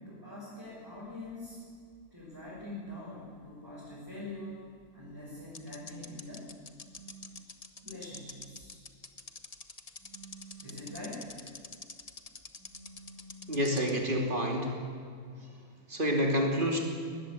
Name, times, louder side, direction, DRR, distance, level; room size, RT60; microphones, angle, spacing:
voice 1, 0.0-1.6 2.1-4.6 4.9-6.5 7.8-8.8 10.6-11.3, left 1 dB, 15° right, -8 dB, 6.5 m, -44 dB
sound 1, 1.0-2.6 2.9-3.0 4.8-4.9 5.5-13.9, left 4 dB, 30° left, 1.1 m, -46 dB
sound 2, 6.9-7.5 10.0-11.0 12.6-13.6, right 3 dB, 85° right, 5.7 m, -52 dB
voice 2, 13.5-14.8 15.4-15.5 15.9-16.8, equal, 35° right, 1 dB, 3.2 m, -28 dB
19.0 x 14.5 x 10.0 m, 2.2 s
omnidirectional pair, 1.5 m